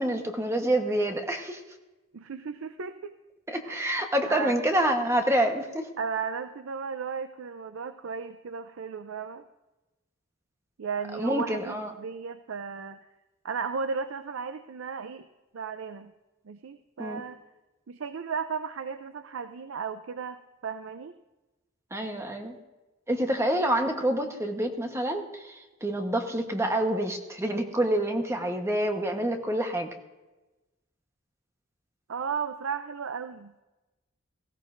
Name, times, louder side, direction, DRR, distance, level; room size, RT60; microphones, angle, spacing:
voice 1, 0.0-1.6 3.5-5.9 11.2-11.9 17.0-17.2 21.9-22.5 23.1-29.9, right 1 dB, 15° right, 4 dB, 1.1 m, -27 dB
voice 2, 2.1-3.1 3.6-4.6 6.0-9.4 10.8-13.0 13.4-15.2 15.5-16.1 16.4-17.4 17.9-21.1 32.1-33.5, right 5 dB, 75° right, 10 dB, 0.5 m, -35 dB
19.0 x 15.5 x 2.6 m, 1.1 s
head